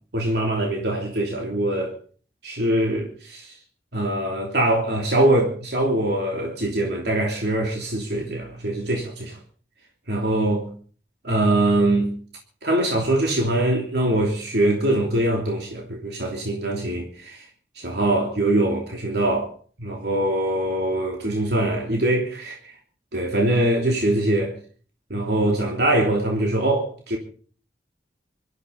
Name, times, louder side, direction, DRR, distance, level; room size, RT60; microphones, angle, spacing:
voice 1, 0.1-1.9 2.4-3.5 3.9-9.4 10.1-10.7 11.2-12.1 12.6-17.4 17.8-19.5 19.8-22.6 23.1-24.5 25.1-27.2, right 1 dB, 75° right, 3.1 m, -23 dB
25.0 x 13.5 x 4.1 m
head